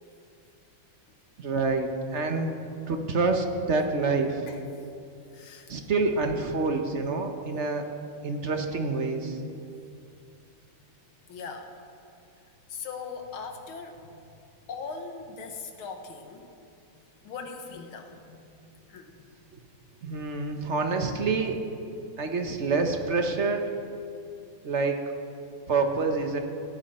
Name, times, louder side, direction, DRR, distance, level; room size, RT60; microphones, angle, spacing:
voice 1, 1.4-2.6 2.9-4.5 5.7-7.9 8.2-9.4 20.0-21.6 22.2-23.7 24.6-25.0 25.7-26.4, right 3 dB, 40° right, 5 dB, 1.1 m, -27 dB
voice 2, 5.3-5.7 11.3-11.7 12.7-14.3 14.7-16.5 16.9-19.3, left 5 dB, 85° left, 5 dB, 2.2 m, -40 dB
19.5 x 14.5 x 4.3 m, 2.6 s
omnidirectional pair, 2.2 m